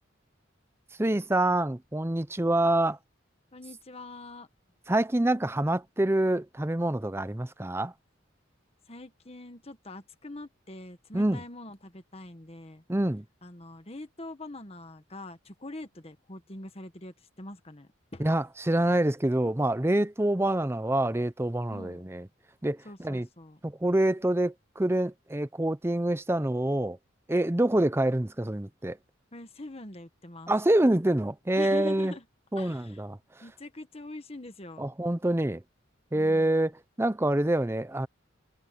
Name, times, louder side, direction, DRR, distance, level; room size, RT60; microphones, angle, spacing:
voice 1, 1.0-3.0 4.9-7.9 11.1-11.4 12.9-13.2 18.2-22.2 22.6-23.3 23.6-27.0 27.3-29.0 30.5-32.1 32.5-33.2 34.8-35.6 36.1-36.7 37.0-38.1, right 1 dB, 10° right, 0.6 m, -26 dB
voice 2, 3.5-4.5 8.9-12.8 13.4-18.2 21.7-22.1 22.8-23.6 29.3-30.5 31.6-32.2 32.6-33.0 33.4-34.9 36.1-36.6, left 2 dB, 30° left, 1.5 m, -43 dB
head